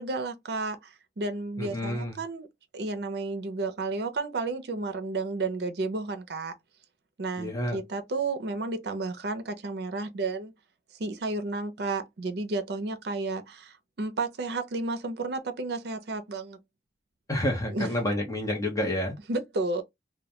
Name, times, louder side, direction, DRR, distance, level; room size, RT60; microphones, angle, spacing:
voice 1, 0.0-2.5 2.7-6.5 7.2-10.5 11.0-16.6 17.7-17.9 19.3-19.8, right 3 dB, 70° right, 0.5 m, -32 dB
voice 2, 1.6-2.2 7.4-7.8 17.3-19.1, left 1 dB, 20° left, 0.7 m, -29 dB
2.2 x 2.1 x 2.8 m
head